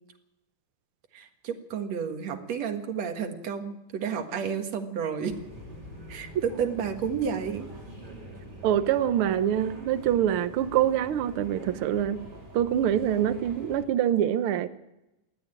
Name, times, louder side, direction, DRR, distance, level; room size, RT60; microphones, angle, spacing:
voice 1, 1.1-5.4 6.1-7.7, right 7 dB, 60° right, 5 dB, 2.7 m, -31 dB
sound 1, 5.3-13.9, right 1 dB, 15° right, 3.3 m, -44 dB
voice 2, 8.6-12.2 12.5-14.7, right 10 dB, 80° right, 11 dB, 1.2 m, -25 dB
19.5 x 15.0 x 8.9 m, 0.91 s
omnidirectional pair, 3.7 m